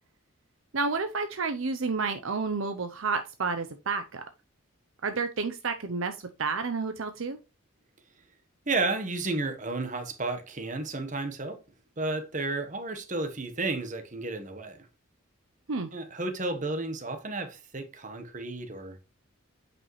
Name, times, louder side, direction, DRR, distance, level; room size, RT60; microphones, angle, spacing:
voice 1, 0.7-4.2 5.0-7.4 15.7-15.9, right 4 dB, 70° right, 0.6 m, -30 dB
voice 2, 8.7-11.6 12.0-14.9 15.9-19.0, right 3 dB, 35° right, 1.2 m, -32 dB
8.6 x 5.2 x 3.1 m
head